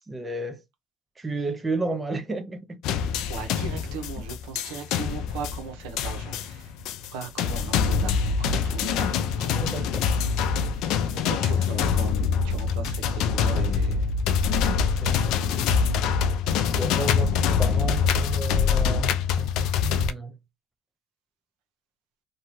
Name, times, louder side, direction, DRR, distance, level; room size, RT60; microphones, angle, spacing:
voice 1, 0.1-0.6 1.2-2.8 9.5-10.1 13.4-13.7 14.8-15.7 16.8-20.4, right 2 dB, 15° right, 0.5 m, -33 dB
sound 1, 2.8-20.1, left 6 dB, 65° left, 0.4 m, -25 dB
voice 2, 3.3-6.7 7.1-9.8 11.1-14.1, right 6 dB, 80° right, 0.8 m, -38 dB
2.7 x 2.3 x 3.1 m
supercardioid pair, 110°, 0 cm